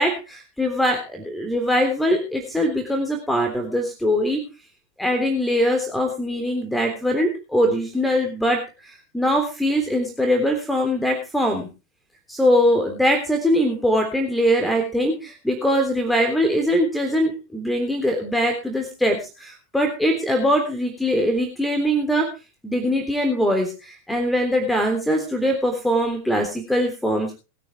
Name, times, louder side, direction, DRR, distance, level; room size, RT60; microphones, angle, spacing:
voice 1, 0.0-4.4 5.0-11.7 12.3-22.3 22.6-27.3, equal, 5° left, 5 dB, 3.4 m, -22 dB
21.0 x 9.4 x 4.6 m, 0.32 s
figure-of-eight pair, 90°, 0 cm